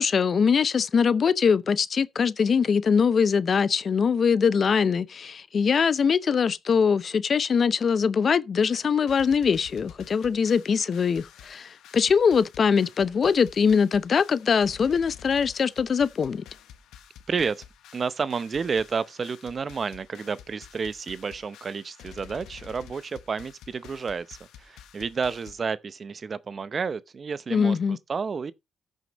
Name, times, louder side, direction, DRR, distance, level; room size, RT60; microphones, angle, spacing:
voice 1, 0.0-16.4 27.5-28.0, left 6 dB, 45° left, 0.6 m, -22 dB
sound 1, 8.7-25.5, left 9 dB, 85° left, 1.1 m, -50 dB
voice 2, 17.3-17.6 17.9-28.5, right 5 dB, 40° right, 0.7 m, -31 dB
14.0 x 6.4 x 3.0 m
cardioid pair, 90°, 0 cm